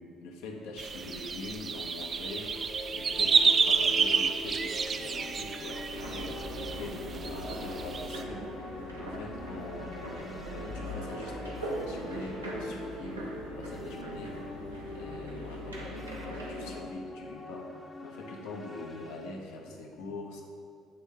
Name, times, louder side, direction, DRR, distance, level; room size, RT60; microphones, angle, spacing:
voice 1, 0.0-2.5 2.9-8.5 8.9-9.9 10.5-14.4 14.9-17.7 18.0-20.4, left 2 dB, 65° left, 1 dB, 0.8 m, -43 dB
sound 1, 0.8-8.2, right 5 dB, 35° right, 0.3 m, -29 dB
sound 2, 2.1-19.4, left 2 dB, 20° left, 0.8 m, -44 dB
sound 3, 5.9-16.7, equal, 85° right, 0.8 m, -40 dB
7.6 x 3.6 x 5.4 m, 2.4 s
figure-of-eight pair, 50°, 0 cm